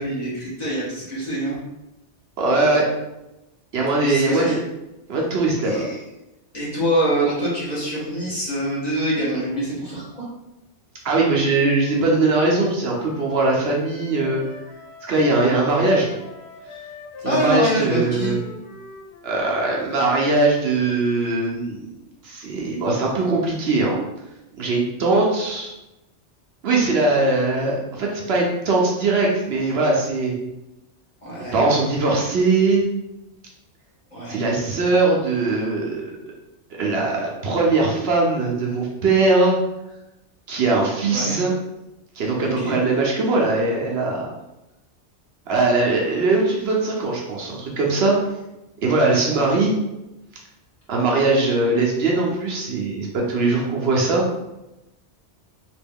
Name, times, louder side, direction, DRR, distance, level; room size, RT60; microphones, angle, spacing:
voice 1, 0.0-1.6 4.0-4.6 5.6-6.0 6.5-10.3 16.7-16.8 17.2-18.4 31.2-31.6 34.1-34.4 41.1-41.4 42.6-42.7 49.3-49.5, right 1 dB, 40° left, -7 dB, 1.1 m, -25 dB
voice 2, 2.4-2.9 3.7-4.6 5.1-5.8 11.0-14.4 15.0-16.1 17.2-18.4 19.2-21.9 22.2-24.0 24.6-25.7 26.6-30.3 31.5-32.8 34.3-36.1 36.8-39.5 40.5-41.5 42.2-44.2 45.5-48.2 48.8-49.7 50.9-54.2, right 3 dB, 65° right, -2 dB, 0.9 m, -20 dB
Wind instrument woodwind instrument, 11.8-19.8, left 3 dB, 70° left, 0.8 m, -41 dB
2.9 x 2.5 x 3.5 m, 0.95 s
omnidirectional pair, 1.2 m